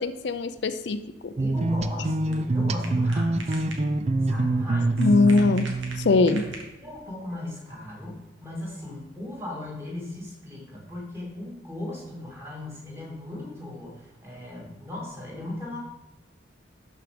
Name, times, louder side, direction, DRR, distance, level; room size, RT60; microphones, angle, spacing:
voice 1, 0.0-1.3 5.0-5.7 6.0-6.4, left 3 dB, 65° left, 10 dB, 0.4 m, -22 dB
voice 2, 1.4-3.6 4.2-5.0 6.2-6.4 6.8-15.8, left 1 dB, 15° right, -3 dB, 2.2 m, -37 dB
sound 1, 1.4-6.6, right 2 dB, 35° right, 0.4 m, -26 dB
sound 2, 1.7-7.0, right 2 dB, 85° right, 1.8 m, -44 dB
12.0 x 4.6 x 5.1 m, 1.0 s
head